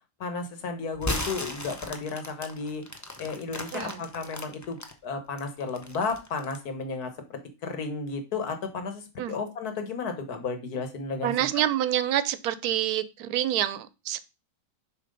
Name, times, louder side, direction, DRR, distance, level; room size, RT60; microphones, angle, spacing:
voice 1, 0.2-2.8 3.2-4.8 5.0-11.6, left 4 dB, 80° left, 7 dB, 1.7 m, -33 dB
sound 1, 0.9-4.9 5.4-6.7, left 1 dB, 20° left, 0.5 m, -35 dB
voice 2, 11.2-14.2, right 12 dB, 85° right, 14 dB, 1.1 m, -27 dB
6.9 x 3.1 x 5.3 m, 0.29 s
omnidirectional pair, 1.6 m